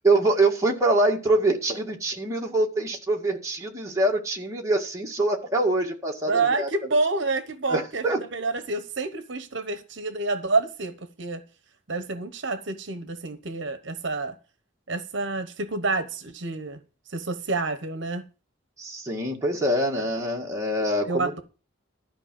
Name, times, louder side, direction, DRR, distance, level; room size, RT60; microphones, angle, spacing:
voice 1, 0.0-6.7 7.7-8.2 18.8-21.4, right 2 dB, 15° right, 1.9 m, -24 dB
voice 2, 6.2-11.4 11.9-14.4 14.9-16.8 17.1-18.2 21.0-21.4, right 3 dB, 65° right, 1.0 m, -28 dB
13.0 x 5.0 x 7.6 m
head